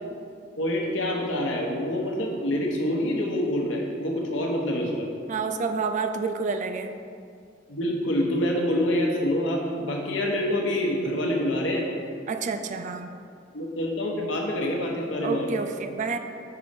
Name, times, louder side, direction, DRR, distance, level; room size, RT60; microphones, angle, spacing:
voice 1, 0.6-5.1 7.7-11.9 13.5-15.5, left 1 dB, 85° left, 0 dB, 0.9 m, -26 dB
voice 2, 5.3-7.0 12.3-13.1 15.2-16.2, right 4 dB, 40° right, 7 dB, 0.3 m, -29 dB
4.7 x 4.1 x 5.1 m, 2.3 s
head